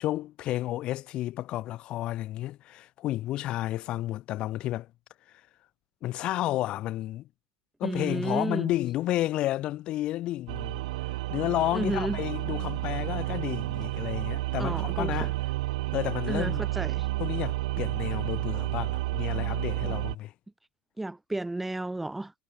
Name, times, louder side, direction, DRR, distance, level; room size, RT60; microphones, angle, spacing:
voice 1, 0.0-4.9 6.0-7.3 7.8-10.8 11.3-15.3 15.9-16.6 17.2-20.3, left 15 dB, 30° left, 0.7 m, -31 dB
voice 2, 7.8-8.7 11.7-12.2 14.6-15.3 16.3-17.1 19.8-19.9 21.0-22.3, right 2 dB, 5° right, 0.6 m, -32 dB
sound 1, 10.5-20.2, right 19 dB, 75° right, 0.4 m, -31 dB
supercardioid pair, 180°, 3 cm